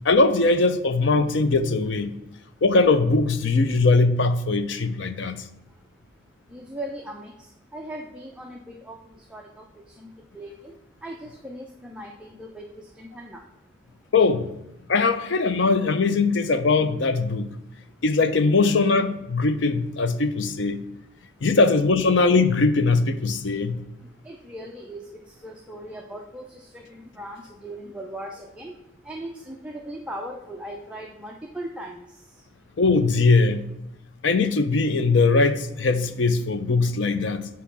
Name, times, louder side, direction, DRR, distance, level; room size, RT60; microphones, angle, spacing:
voice 1, 0.0-2.1 2.6-5.5 14.1-14.5 14.9-17.5 18.0-20.8 21.4-23.8 32.8-33.6 34.2-37.5, left 3 dB, 70° left, 11 dB, 0.6 m, -21 dB
voice 2, 6.5-7.3 7.7-9.0 9.3-9.6 10.0-10.1 10.3-10.5 11.0-13.4 24.2-28.7 29.0-32.0, right 1 dB, 5° right, 0 dB, 0.5 m, -38 dB
8.2 x 3.1 x 5.9 m, 0.87 s
head